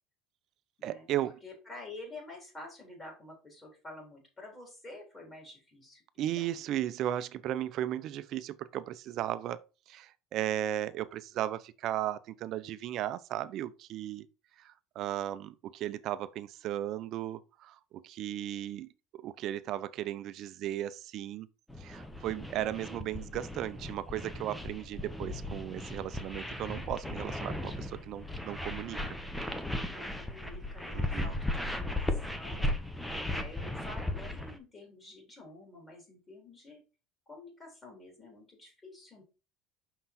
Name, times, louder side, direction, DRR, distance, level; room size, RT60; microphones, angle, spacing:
voice 1, 0.8-1.4 6.2-9.6 9.9-14.3 14.6-21.5 21.8-29.2 30.9-31.3, right 12 dB, 55° right, 0.7 m, -36 dB
voice 2, 1.4-6.7 29.8-33.0 33.3-36.8 37.3-39.2, left 2 dB, 20° left, 3.6 m, -49 dB
sound 1, 21.7-34.6, left 1 dB, 5° left, 1.0 m, -36 dB
5.9 x 5.6 x 4.3 m
supercardioid pair, 125°, 0 cm